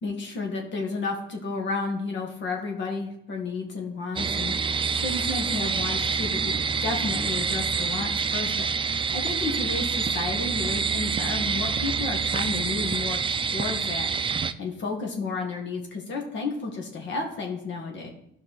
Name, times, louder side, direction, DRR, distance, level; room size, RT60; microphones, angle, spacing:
voice 1, 0.0-4.5 5.0-6.5 6.8-8.7 9.1-18.1, left 3 dB, 65° left, 1 dB, 1.8 m, -32 dB
Night Woods, 4.2-14.5, right 5 dB, 25° right, 0.4 m, -27 dB
12.5 x 5.6 x 4.1 m, 0.77 s
cardioid pair, 90°, 20 cm